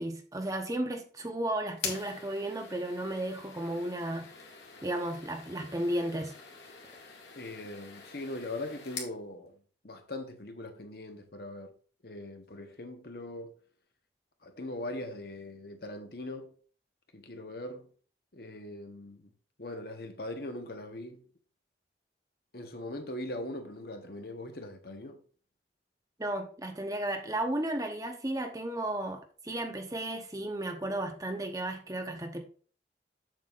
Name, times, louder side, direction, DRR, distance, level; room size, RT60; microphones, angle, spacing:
voice 1, 0.0-4.3 4.8-6.3 26.2-32.4, right 1 dB, 20° right, 0.8 m, -34 dB
sound 1, 1.7-9.2, left 6 dB, 70° left, 2.0 m, -44 dB
voice 2, 7.3-9.5 9.8-11.7 12.0-13.6 14.4-16.5 17.1-17.9 18.3-19.3 19.6-21.2 22.5-25.2, left 1 dB, 55° left, 1.1 m, -41 dB
7.6 x 7.3 x 2.5 m
head